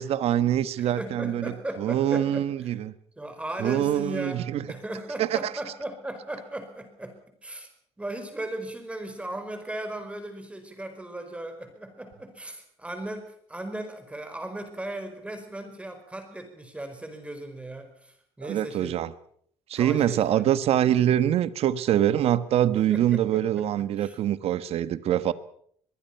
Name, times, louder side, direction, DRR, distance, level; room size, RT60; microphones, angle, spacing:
voice 1, 0.0-1.5 1.8-2.8 3.6-4.6 5.2-5.4 18.4-19.1 19.7-25.3, right 11 dB, 65° right, 14 dB, 1.3 m, -24 dB
voice 2, 0.8-2.8 3.2-7.2 7.4-7.7 8.0-19.0 19.8-20.5 22.7-24.2, right 1 dB, 10° right, 7 dB, 4.8 m, -37 dB
23.0 x 22.5 x 5.8 m, 0.62 s
cardioid pair, 120°, 11 cm